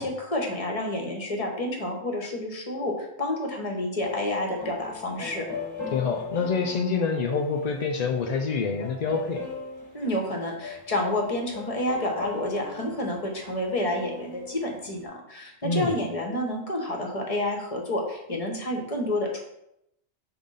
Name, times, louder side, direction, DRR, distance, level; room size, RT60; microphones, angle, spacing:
voice 1, 0.0-5.5 9.9-19.4, left 1 dB, 30° left, 1 dB, 1.2 m, -29 dB
sound 1, 4.0-15.0, left 4 dB, 15° left, 1.5 m, -39 dB
voice 2, 5.9-9.4 15.6-16.0, left 5 dB, 55° left, 2 dB, 0.5 m, -26 dB
4.8 x 3.8 x 5.5 m, 0.81 s
omnidirectional pair, 1.2 m